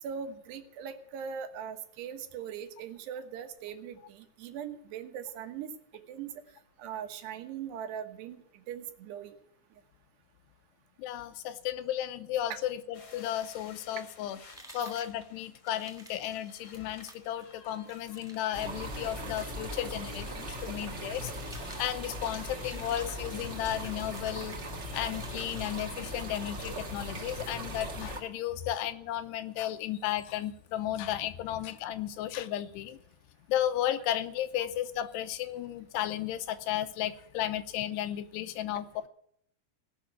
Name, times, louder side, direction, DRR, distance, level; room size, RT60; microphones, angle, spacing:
voice 1, 0.0-5.7 6.1-6.3 6.8-9.4 12.5-12.6 14.7-14.9, right 8 dB, 80° right, 7 dB, 3.3 m, -40 dB
voice 2, 11.0-14.4 14.7-24.6 24.9-33.0 33.5-38.9, left 12 dB, 85° left, 11 dB, 2.9 m, -34 dB
sound 1, 12.9-24.0, left 5 dB, 50° left, 1.4 m, -56 dB
sound 2, 14.5-26.4, right 1 dB, ahead, 1.1 m, -54 dB
sound 3, 18.5-28.2, equal, 50° right, 0.8 m, -39 dB
17.5 x 6.0 x 8.8 m, 0.70 s
omnidirectional pair, 4.8 m